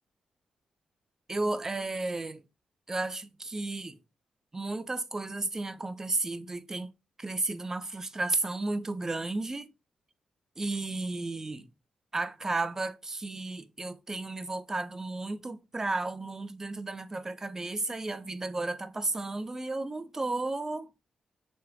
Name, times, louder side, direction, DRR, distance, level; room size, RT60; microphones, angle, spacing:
voice 1, 1.3-2.4 2.9-4.0 4.5-6.9 7.2-9.7 10.6-11.7 12.1-20.9, right 2 dB, 25° right, 0.4 m, -33 dB
3.1 x 3.0 x 2.4 m
cardioid pair, 60°, 2 cm